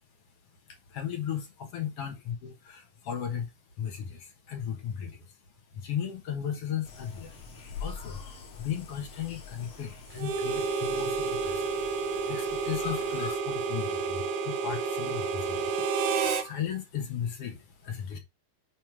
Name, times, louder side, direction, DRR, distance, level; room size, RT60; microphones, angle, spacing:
voice 1, 0.9-3.5 3.8-5.2 5.7-7.4 7.8-8.2 8.6-11.7 12.3-15.9 16.4-18.2, left 9 dB, 60° left, 2.0 m, -36 dB
sound 1, 6.9-13.4, left 5 dB, 80° left, 3.7 m, -44 dB
Harmonica, 10.2-16.5, right 5 dB, 80° right, 2.5 m, -30 dB
9.1 x 3.2 x 4.9 m
omnidirectional pair, 3.4 m